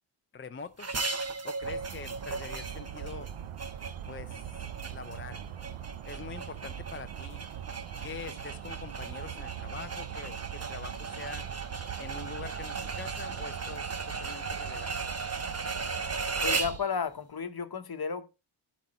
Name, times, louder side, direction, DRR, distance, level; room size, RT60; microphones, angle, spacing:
voice 1, 0.3-1.0 1.4-3.3 4.1-5.4 6.0-7.4 8.0-11.5 12.0-14.9, left 5 dB, 25° left, 0.5 m, -44 dB
sound 1, 0.8-16.8, right 4 dB, 30° right, 1.0 m, -37 dB
sound 2, 1.6-16.8, right 10 dB, 80° right, 0.7 m, -42 dB
voice 2, 16.4-18.3, left 6 dB, 50° left, 1.1 m, -33 dB
12.0 x 4.2 x 4.2 m
wide cardioid pair, 85°, 50 cm